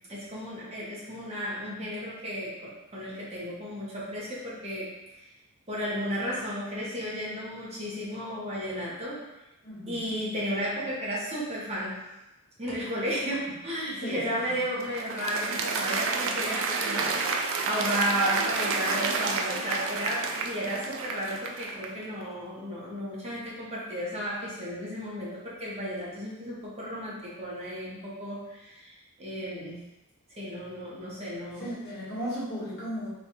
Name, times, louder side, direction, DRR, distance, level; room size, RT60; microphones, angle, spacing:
voice 1, 0.1-5.3 5.7-9.2 9.9-12.0 12.6-29.9 30.4-31.7, equal, 30° right, -7 dB, 0.9 m, -33 dB
voice 2, 9.6-10.1 14.0-14.5 31.6-33.1, equal, 50° left, -8 dB, 1.3 m, -36 dB
Applause, 14.4-22.1, right 4 dB, 60° right, 0.4 m, -30 dB
3.2 x 2.3 x 4.1 m, 0.97 s
head